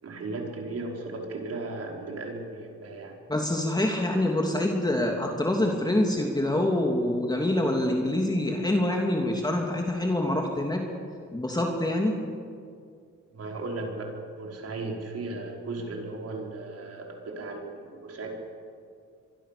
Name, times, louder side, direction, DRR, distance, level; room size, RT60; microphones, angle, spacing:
voice 1, 0.0-3.2 13.3-18.3, right 2 dB, 55° right, 1 dB, 5.3 m, -36 dB
voice 2, 3.3-10.8 11.3-12.2, left 1 dB, 15° left, 1 dB, 3.1 m, -26 dB
25.0 x 23.5 x 7.0 m, 2.2 s
cardioid pair, 90°, 30 cm